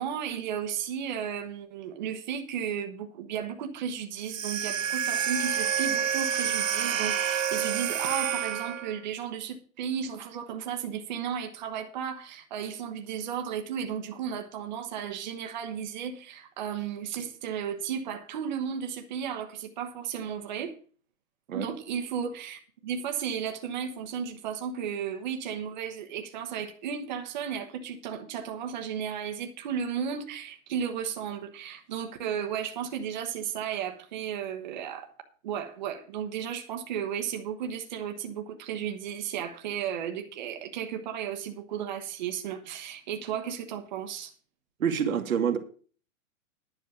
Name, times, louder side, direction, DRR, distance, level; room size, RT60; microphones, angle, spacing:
voice 1, 0.0-20.8 21.5-35.1 35.4-44.3, right 8 dB, 35° right, 1.1 m, -34 dB
sound 1, 4.2-9.0, right 8 dB, 70° right, 1.3 m, -28 dB
voice 2, 44.8-45.6, right 7 dB, 85° right, 1.9 m, -27 dB
10.5 x 6.4 x 6.8 m
hypercardioid pair, 175°, 41 cm